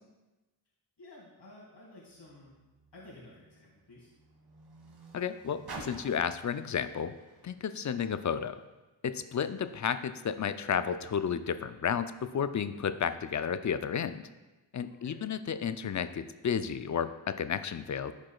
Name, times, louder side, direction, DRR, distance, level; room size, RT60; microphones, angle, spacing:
voice 1, 1.0-2.6 2.9-4.1 14.9-15.3, left 2 dB, 55° left, -5 dB, 2.3 m, -53 dB
Car, 2.1-8.7 9.5-9.6, right 2 dB, 50° right, 1.8 m, -51 dB
voice 2, 5.1-7.1 7.4-8.6 9.0-14.2 14.7-18.1, left 7 dB, 40° left, 11 dB, 0.5 m, -32 dB
11.5 x 4.8 x 2.3 m, 1.1 s
cardioid pair, 45°, 49 cm